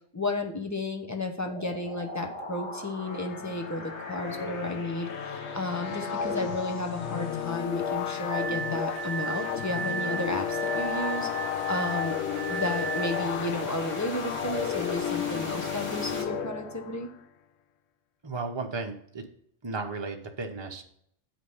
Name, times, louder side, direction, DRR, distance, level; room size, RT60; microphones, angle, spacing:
voice 1, 0.1-11.3 11.7-12.2 12.5-17.1, left 2 dB, 15° left, 3 dB, 0.8 m, -33 dB
sound 1, 1.5-16.2, left 1 dB, 90° left, 2.6 m, -42 dB
sound 2, 3.0-17.1, left 8 dB, 70° left, 0.9 m, -33 dB
Glass, 8.3-13.3, right 6 dB, 65° right, 0.7 m, -35 dB
voice 2, 18.2-19.2 19.6-20.8, right 3 dB, 25° right, 3 dB, 1.0 m, -34 dB
8.6 x 5.0 x 5.6 m, 0.67 s
omnidirectional pair, 1.2 m